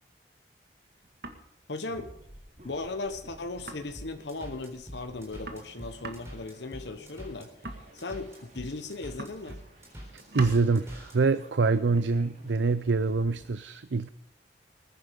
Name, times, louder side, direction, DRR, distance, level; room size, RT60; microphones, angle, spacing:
sound 1, 0.9-1.6 1.9-2.2 2.5-2.6 2.8-2.9 3.1-3.2 3.6-4.4 4.8-4.9 5.1-8.7 9.1-9.8 10.0-10.7 11.6-13.4, right 2 dB, 60° right, 1.8 m, -45 dB
voice 1, 1.7-2.1 2.6-7.5 7.9-9.6, left 3 dB, 75° left, 1.2 m, -37 dB
sound 2, 1.8-13.5, equal, 40° right, 4.6 m, -55 dB
sound 3, 3.9-11.2, equal, 15° right, 3.9 m, -45 dB
voice 2, 10.3-14.1, right 4 dB, 80° right, 0.6 m, -25 dB
20.0 x 10.5 x 5.2 m
head